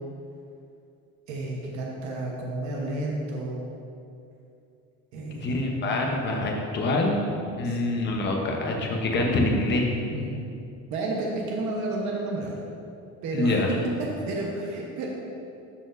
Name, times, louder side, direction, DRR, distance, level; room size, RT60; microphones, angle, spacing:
voice 1, 1.3-3.6 5.1-5.5 7.6-7.9 10.1-10.4 10.9-12.6 13.2-13.6 14.3-15.1, right 2 dB, 70° right, -2 dB, 1.1 m, -31 dB
voice 2, 5.3-7.3 7.6-9.9 13.3-13.7, left 2 dB, 35° left, 1 dB, 0.9 m, -25 dB
12.5 x 4.2 x 2.6 m, 2.6 s
cardioid pair, 145°, 30 cm